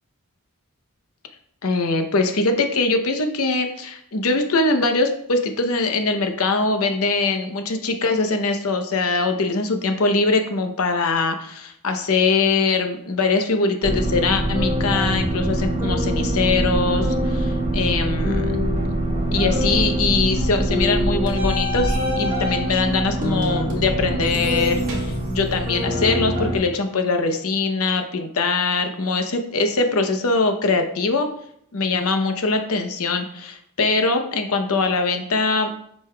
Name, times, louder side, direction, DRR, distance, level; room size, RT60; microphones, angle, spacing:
voice 1, 1.6-18.6 19.3-31.3 31.7-35.7, left 3 dB, 75° left, 6 dB, 0.7 m, -22 dB
sound 1, 13.8-26.6, right 1 dB, 40° right, 1.7 m, -23 dB
7.5 x 5.4 x 2.3 m, 0.70 s
head